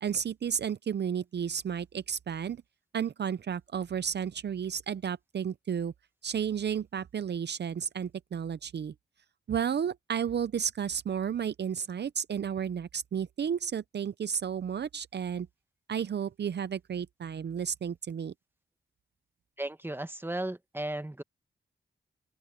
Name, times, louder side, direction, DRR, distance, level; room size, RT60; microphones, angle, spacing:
voice 1, 0.0-2.6 2.9-5.9 6.2-8.9 9.5-15.5 15.9-18.3, right 8 dB, 65° right, 0.6 m, -32 dB
voice 2, 19.6-21.2, right 1 dB, 10° right, 1.5 m, -35 dB
open air
cardioid pair, 60°, 19 cm